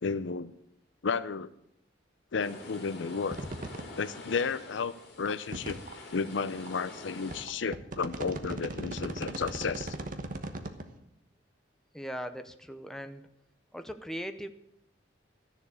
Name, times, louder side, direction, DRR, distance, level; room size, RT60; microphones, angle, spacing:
voice 1, 0.0-0.5 1.0-1.5 2.3-3.4 3.9-5.8 6.1-10.0, left 5 dB, 80° left, 15 dB, 0.6 m, -32 dB
sound 1, 2.4-7.5, left 2 dB, 60° left, 2.6 m, -46 dB
sound 2, 3.3-3.8 4.3-4.4 5.2-5.9 6.7-6.8 7.3-10.8, right 2 dB, 45° right, 1.1 m, -37 dB
voice 2, 11.9-13.2 13.7-14.5, equal, 5° left, 8 dB, 0.7 m, -39 dB
13.0 x 7.1 x 8.3 m, 0.78 s
head